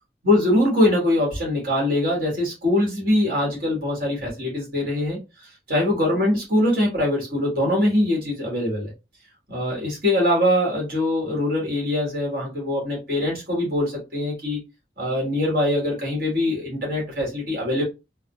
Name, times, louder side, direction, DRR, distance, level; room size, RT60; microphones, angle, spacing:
voice 1, 0.2-5.2 5.7-8.9 9.5-14.6 15.0-17.8, left 1 dB, 50° right, -1 dB, 1.4 m, -22 dB
3.5 x 2.1 x 2.2 m, 0.26 s
head